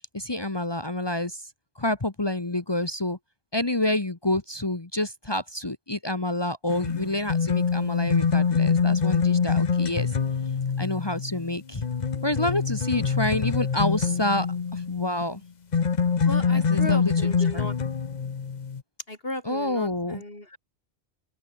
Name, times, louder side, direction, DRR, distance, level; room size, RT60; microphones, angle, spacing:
voice 1, 0.1-1.4 1.8-3.2 3.5-10.1 10.8-11.8 12.2-14.5 14.7-15.4 16.5-17.7 19.4-20.2, left 1 dB, 25° left, 1.3 m, -28 dB
sound 1, 6.7-15.3 15.7-18.8, left 6 dB, 45° left, 1.0 m, -25 dB
voice 2, 16.2-17.8 19.1-20.6, left 1 dB, 65° left, 6.2 m, -36 dB
open air
omnidirectional pair, 1.1 m